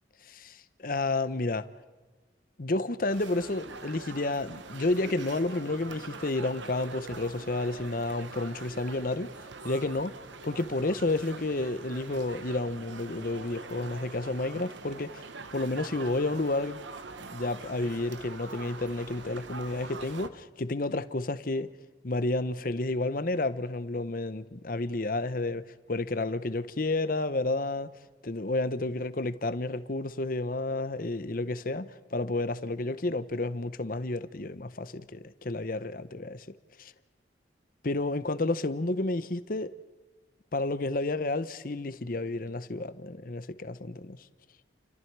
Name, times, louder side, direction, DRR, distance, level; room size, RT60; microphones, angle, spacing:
voice 1, 0.2-1.7 2.6-9.3 9.6-10.1 10.4-15.2 15.5-16.8 17.2-21.7 22.0-27.9 28.2-36.5 36.8-36.9 37.8-39.7 40.5-44.3, left 2 dB, 50° left, 0.8 m, -31 dB
sound 1, 3.1-20.3, right 4 dB, 90° right, 1.1 m, -44 dB
29.5 x 25.5 x 4.7 m
head